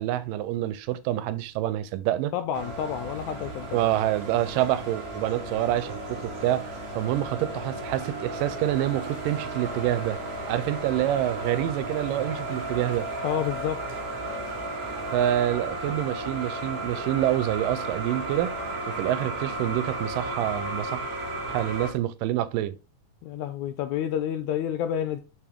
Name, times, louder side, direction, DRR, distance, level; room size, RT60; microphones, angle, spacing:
voice 1, 0.0-2.3 3.7-6.7 7.0-10.2 10.5-13.1 15.1-18.6 18.9-21.0 21.5-22.8, right 13 dB, 85° right, 2.3 m, -27 dB
voice 2, 2.3-3.8 13.2-13.8 23.2-25.2, left 9 dB, 80° left, 1.7 m, -29 dB
sound 1, 2.5-21.9, right 2 dB, 40° right, 1.5 m, -34 dB
6.5 x 5.8 x 3.5 m
omnidirectional pair, 3.8 m